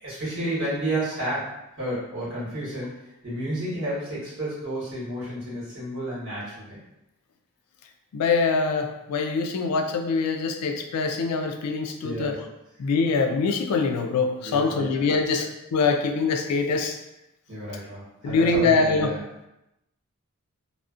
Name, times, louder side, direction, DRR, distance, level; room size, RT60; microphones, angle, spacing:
voice 1, 0.0-2.9 3.2-6.8 12.0-12.3 14.4-14.8 17.5-19.2, right 1 dB, 60° right, -9 dB, 1.2 m, -31 dB
voice 2, 8.1-12.4 12.8-17.0 18.2-19.1, left 4 dB, 85° left, 5 dB, 0.3 m, -24 dB
2.4 x 2.1 x 2.4 m, 0.90 s
head